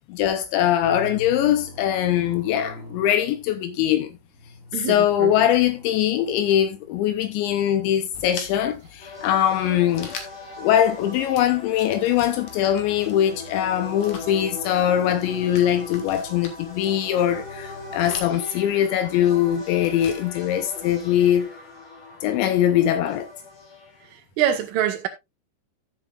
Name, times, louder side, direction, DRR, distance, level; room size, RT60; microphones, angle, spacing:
voice 1, 0.1-4.1 4.8-10.1 10.6-21.5 22.2-23.3, left 11 dB, 80° left, 2.8 m, -22 dB
sound 1, 0.8-18.2, left 1 dB, 25° right, 1.6 m, -46 dB
voice 2, 4.7-5.3 24.4-25.1, right 10 dB, 75° right, 4.0 m, -24 dB
sound 2, 8.1-21.5, left 5 dB, 55° left, 2.3 m, -45 dB
sound 3, 9.0-24.1, left 3 dB, 40° left, 2.0 m, -40 dB
14.5 x 7.7 x 2.4 m
omnidirectional pair, 5.8 m